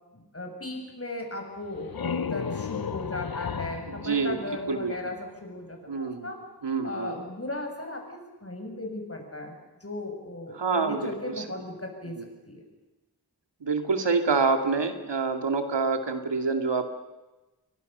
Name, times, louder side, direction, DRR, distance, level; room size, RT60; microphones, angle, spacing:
voice 1, 0.1-6.4 6.8-9.5 9.8-12.1 12.4-12.6, left 2 dB, 35° left, 3 dB, 7.1 m, -36 dB
sound 1, 1.6-5.2, left 7 dB, 60° left, 0.9 m, -34 dB
voice 2, 4.0-4.4 4.7-5.0 5.9-6.3 6.6-7.1 10.5-11.4 13.6-16.8, right 4 dB, 85° right, 6 dB, 2.5 m, -26 dB
30.0 x 23.5 x 6.9 m, 1.1 s
wide cardioid pair, 85°, 41 cm